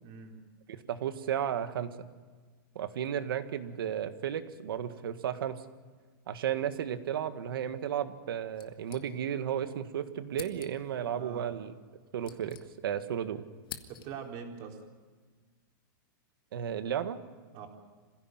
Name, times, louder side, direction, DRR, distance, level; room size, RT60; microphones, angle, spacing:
voice 1, 0.0-0.4 11.1-11.5 13.9-14.8 17.5-17.7, right 7 dB, 35° right, 1 dB, 4.1 m, -43 dB
voice 2, 0.7-1.9 2.8-5.6 6.3-11.7 12.1-12.6 12.8-13.4 16.5-17.2, right 9 dB, 80° right, 9 dB, 1.9 m, -33 dB
sound 1, 8.5-9.6 9.8-9.9 10.3-11.0 11.8-13.1 13.4-14.4, left 9 dB, 80° left, 2.1 m, -48 dB
26.5 x 16.5 x 9.5 m, 1.5 s
supercardioid pair, 155°, 12 cm